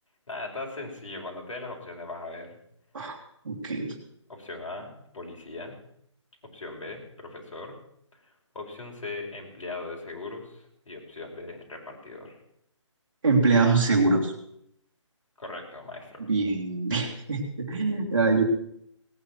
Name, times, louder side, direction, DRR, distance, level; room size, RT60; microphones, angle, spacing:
voice 1, 0.3-2.6 4.3-5.8 6.5-7.8 8.2-12.4 15.4-16.3 17.8-17.9, left 3 dB, 85° left, 0 dB, 5.1 m, -39 dB
voice 2, 3.4-3.9 13.2-14.3 16.3-18.4, right 3 dB, 45° right, -5 dB, 2.3 m, -24 dB
17.5 x 9.4 x 6.1 m, 0.73 s
hypercardioid pair, 175°, 16 cm